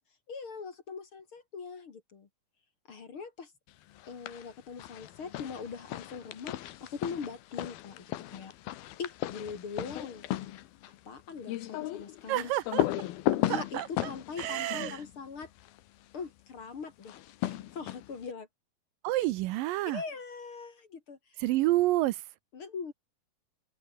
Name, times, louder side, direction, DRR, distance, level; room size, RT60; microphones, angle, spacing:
voice 1, 0.3-2.3 2.9-3.5 4.0-8.0 8.3-8.5 9.0-10.3 11.1-12.5 13.5-15.5 16.1-18.5 19.2-19.3 19.9-21.2 22.5-22.9, left 5 dB, 40° left, 2.5 m, -41 dB
sound 1, 4.0-4.5 4.8-15.8 17.0-18.3, left 14 dB, 90° left, 3.1 m, -35 dB
voice 2, 12.3-12.8 13.5-14.1 14.4-15.0 19.0-20.0 21.4-22.2, right 16 dB, 80° right, 2.3 m, -29 dB
open air
omnidirectional pair, 4.2 m